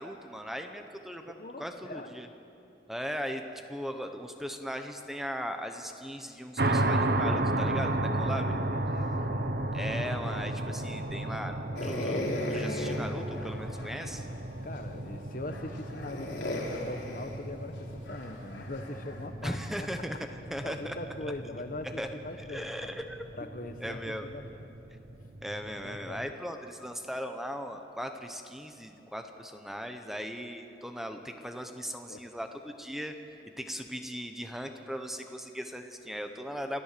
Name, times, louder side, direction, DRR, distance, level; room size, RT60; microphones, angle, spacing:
voice 1, 0.0-2.3 2.9-3.4 3.7-8.5 9.7-14.3 19.4-20.9 21.2-21.3 22.0-22.1 22.5-23.2 23.8-24.3 25.4-33.1 33.6-36.8, equal, ahead, 6 dB, 0.9 m, -38 dB
voice 2, 1.3-2.1 7.5-9.6 14.6-19.9 20.6-23.0 23.3-24.7 25.8-26.2 32.1-32.3, left 2 dB, 50° left, 8 dB, 1.0 m, -42 dB
sound 1, 6.6-26.3, right 1 dB, 60° right, 1.0 m, -34 dB
sound 2, 11.8-14.1 14.8-14.9 15.4-19.3, left 1 dB, 85° left, 3.4 m, -36 dB
27.5 x 14.5 x 6.8 m, 2.8 s
head